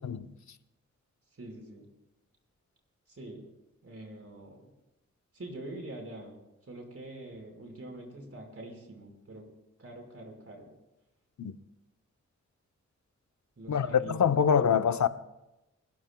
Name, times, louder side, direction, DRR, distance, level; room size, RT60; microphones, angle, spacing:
voice 1, 1.3-1.8 3.1-3.5 3.8-4.7 5.3-9.5 9.8-10.7 13.6-14.7, right 1 dB, 50° right, 5.1 m, -45 dB
voice 2, 13.7-15.1, left 7 dB, 70° left, 0.8 m, -25 dB
30.0 x 15.5 x 2.3 m
cardioid pair, 55°, 29 cm